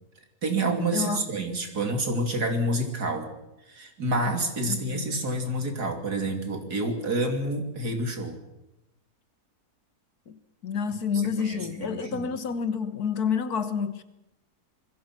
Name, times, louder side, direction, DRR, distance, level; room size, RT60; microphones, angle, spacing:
voice 1, 0.4-3.3 3.7-8.4 11.4-12.3, right 1 dB, 75° right, 3.5 m, -28 dB
voice 2, 0.9-1.2 4.7-5.2 10.3-14.0, left 6 dB, 70° left, 1.9 m, -29 dB
27.5 x 21.0 x 6.1 m
omnidirectional pair, 1.7 m